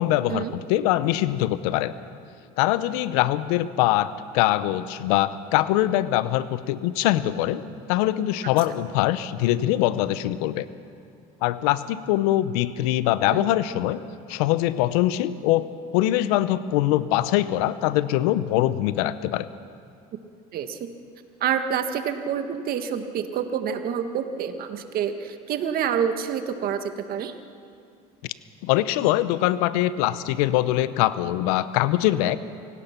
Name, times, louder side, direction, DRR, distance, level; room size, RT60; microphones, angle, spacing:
voice 1, 0.0-0.4 0.7-1.9 2.6-7.6 7.9-10.7 11.4-14.0 14.3-15.7 15.9-19.5 28.6-32.4, left 14 dB, 80° left, 15 dB, 0.9 m, -23 dB
voice 2, 20.5-20.9 21.4-27.3, right 8 dB, 55° right, 8 dB, 1.8 m, -27 dB
25.5 x 17.0 x 6.0 m, 2.4 s
supercardioid pair, 100°, 19 cm